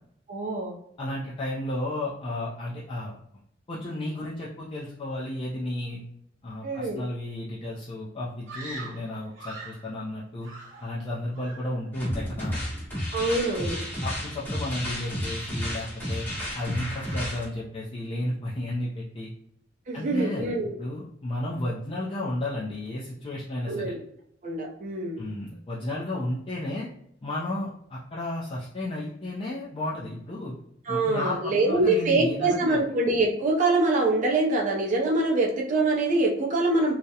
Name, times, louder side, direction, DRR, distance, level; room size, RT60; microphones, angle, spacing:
voice 1, 0.3-0.7 6.6-7.0 13.1-13.8 19.9-20.7 23.7-24.0 24.4-25.2 30.9-36.9, right 2 dB, 40° right, -1 dB, 0.5 m, -24 dB
voice 2, 1.0-3.1 3.7-6.0 6.4-10.5 10.8-12.6 14.0-16.3 16.5-19.3 19.9-23.9 25.2-26.9 27.2-30.5 30.9-32.8, left 1 dB, 30° left, -6 dB, 0.4 m, -33 dB
Screaming, 8.5-9.9 10.4-11.1 11.3-11.8, right 2 dB, 75° right, 0.8 m, -42 dB
sound 1, 11.9-17.5, equal, 10° left, 0.9 m, -32 dB
2.3 x 2.0 x 2.7 m, 0.72 s
head